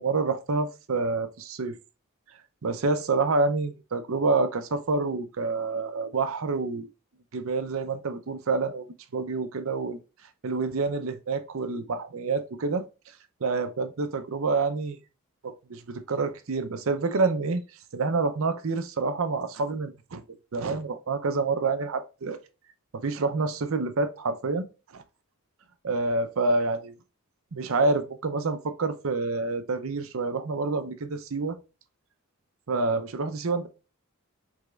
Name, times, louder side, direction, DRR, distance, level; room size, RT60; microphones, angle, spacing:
voice 1, 0.0-1.8 2.6-6.9 7.3-8.8 9.1-10.0 10.4-12.8 13.4-15.0 15.4-17.6 17.9-20.2 20.5-22.4 22.9-24.7 24.9-25.0 25.8-26.9 27.5-31.6 32.7-33.7, right 3 dB, 65° right, 0.6 m, -27 dB
5.0 x 3.4 x 2.3 m
head